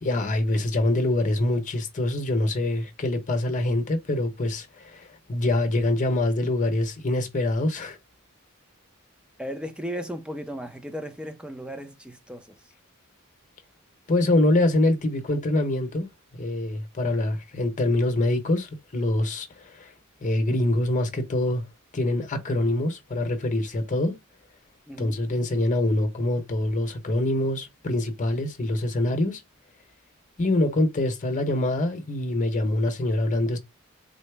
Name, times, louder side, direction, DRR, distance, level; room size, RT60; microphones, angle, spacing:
voice 1, 0.0-8.0 14.1-16.1 16.3-19.9 20.2-21.6 21.9-24.1 25.0-29.4 30.4-33.6, left 1 dB, 35° left, 0.9 m, -25 dB
voice 2, 9.4-12.5 24.9-25.1, equal, 5° right, 0.5 m, -35 dB
4.0 x 2.0 x 3.3 m
head